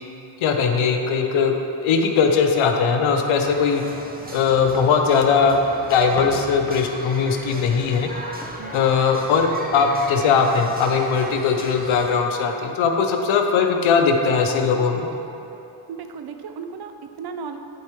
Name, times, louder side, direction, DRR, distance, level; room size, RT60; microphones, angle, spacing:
voice 1, 0.4-1.5 1.8-3.8 4.3-5.6 5.9-8.1 8.7-15.1, left 5 dB, 85° left, 4 dB, 0.8 m, -19 dB
sound 1, 3.4-12.2, right 1 dB, 20° right, 0.9 m, -37 dB
sound 2, 6.2-6.9 8.0-8.1 8.4-9.9 10.6-11.1, left 1 dB, 5° left, 1.0 m, -40 dB
voice 2, 15.9-17.6, right 6 dB, 55° right, 7 dB, 0.6 m, -35 dB
10.5 x 4.6 x 3.2 m, 2.9 s
cardioid pair, 70°, 47 cm